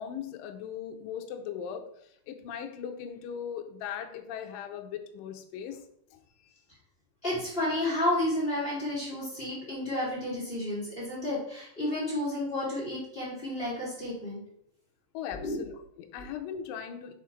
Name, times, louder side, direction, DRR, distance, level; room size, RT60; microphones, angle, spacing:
voice 1, 0.0-1.9 2.3-5.8 6.1-6.2 15.1-17.1, left 8 dB, 80° left, 5 dB, 2.0 m, -39 dB
voice 2, 7.2-14.4 15.3-15.6, left 1 dB, 25° left, -7 dB, 1.2 m, -31 dB
6.5 x 3.8 x 4.3 m, 0.72 s
omnidirectional pair, 4.6 m